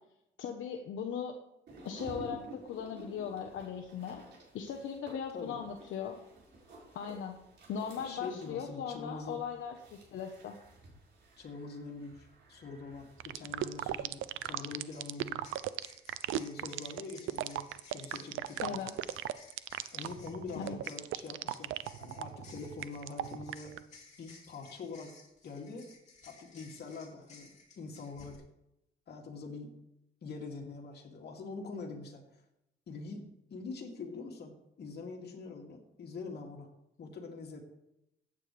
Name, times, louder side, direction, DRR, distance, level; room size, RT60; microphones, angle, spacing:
voice 1, 0.4-1.4 1.8-4.2 4.5-6.2 6.9-7.4 7.7-10.6 18.6-18.9 20.6-20.8, left 7 dB, 75° left, 3 dB, 1.1 m, -38 dB
sound 1, 1.7-14.5, right 1 dB, 60° right, 5.2 m, -53 dB
voice 2, 8.0-9.4 11.4-15.5 16.4-18.9 19.9-21.7 22.0-23.8 24.2-25.1 25.4-25.9 26.2-28.4 29.1-29.7 30.2-32.4 32.9-36.7 37.0-37.6, left 4 dB, 55° left, 0 dB, 2.7 m, -44 dB
sound 2, 13.2-23.8, right 14 dB, 80° right, 0.6 m, -36 dB
sound 3, 13.8-13.9 14.7-28.4, left 4 dB, 35° left, 3.5 m, -58 dB
15.0 x 9.3 x 3.4 m, 0.85 s
cardioid pair, 90°, 20 cm